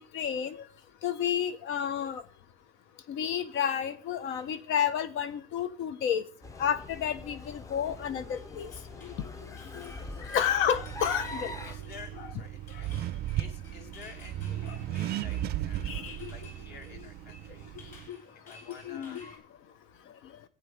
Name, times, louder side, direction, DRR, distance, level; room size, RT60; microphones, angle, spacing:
voice 1, 0.1-0.6 1.0-2.2 3.1-6.2 6.6-8.7 10.3-11.5 12.2-12.3 15.9-16.2 18.1-18.2 18.8-19.2, left 8 dB, 80° left, 13 dB, 1.0 m, -30 dB
sound 1, 6.4-11.8, left 2 dB, 15° left, 0.6 m, -42 dB
sound 2, 7.8-19.4, left 3 dB, 40° left, 3.8 m, -55 dB
voice 2, 9.6-10.4 11.4-17.8 18.5-19.2, left 5 dB, 55° left, 4 dB, 2.1 m, -51 dB
Accelerating revving vroom, 10.7-18.1, right 13 dB, 50° right, 0.4 m, -36 dB
15.5 x 8.9 x 3.4 m, 0.38 s
cardioid pair, 170°, 20 cm